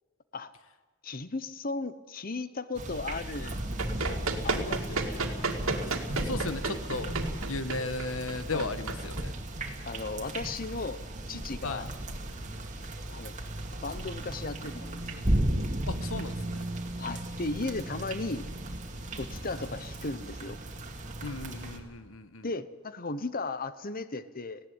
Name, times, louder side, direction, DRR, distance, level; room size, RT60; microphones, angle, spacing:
voice 1, 1.0-3.6 4.0-4.2 4.4-5.4 8.5-8.7 9.9-11.0 11.3-11.9 13.1-13.3 13.8-15.0 17.0-18.5 19.1-20.6 22.4-24.6, left 3 dB, 45° left, 14 dB, 1.0 m, -36 dB
sound 1, 2.7-21.8, right 1 dB, 35° right, 2.3 m, -35 dB
Run, 3.7-9.9, right 3 dB, 85° right, 2.3 m, -33 dB
voice 2, 6.2-7.1 7.5-9.3 11.6-11.8 15.9-16.6 21.2-22.5, left 3 dB, 80° left, 11 dB, 1.4 m, -35 dB
18.5 x 16.5 x 9.7 m, 1.4 s
head